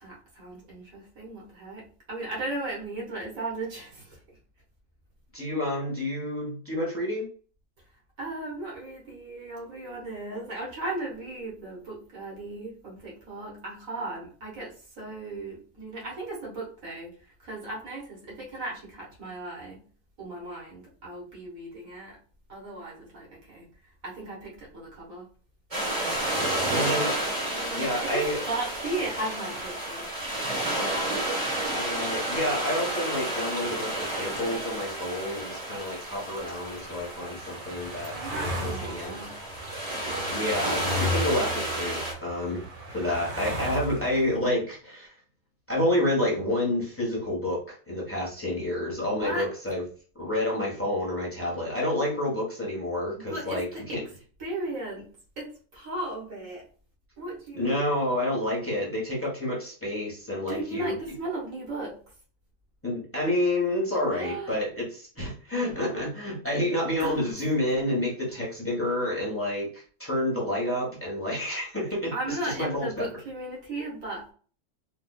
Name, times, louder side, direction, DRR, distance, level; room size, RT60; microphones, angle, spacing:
voice 1, 0.0-4.2 8.2-19.9 20.2-22.2 22.5-23.7 24.0-25.3 27.4-30.1 38.1-39.4 49.1-49.5 53.2-54.0 54.4-55.1 55.4-56.7 57.2-57.9 60.5-62.0 64.1-64.6 67.0-67.3 72.1-74.3, right 2 dB, 60° right, -3 dB, 1.7 m, -36 dB
voice 2, 5.3-7.3 26.7-27.1 27.7-28.4 31.7-39.2 40.3-42.6 42.9-45.1 45.7-49.8 50.1-54.0 57.5-61.0 62.8-73.1, left 1 dB, 10° left, -4 dB, 1.1 m, -29 dB
sound 1, 25.7-42.1, right 1 dB, 25° right, 1.3 m, -31 dB
sound 2, 36.6-44.4, left 1 dB, 80° right, 1.4 m, -36 dB
4.3 x 2.6 x 2.3 m, 0.41 s
omnidirectional pair, 1.6 m